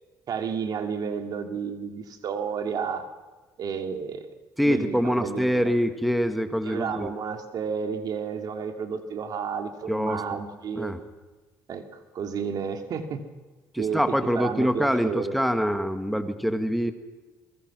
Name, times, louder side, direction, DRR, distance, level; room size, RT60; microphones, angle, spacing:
voice 1, 0.3-3.1 3.6-4.3 4.6-5.7 6.6-10.9 11.7-11.8 12.1-13.3 13.8-15.3, right 6 dB, 65° right, 6 dB, 2.5 m, -31 dB
voice 2, 4.6-7.1 9.9-10.2 10.8-11.0 13.7-16.9, equal, ahead, 8 dB, 1.8 m, -25 dB
23.5 x 22.0 x 6.2 m, 1.2 s
cardioid pair, 85°, 7 cm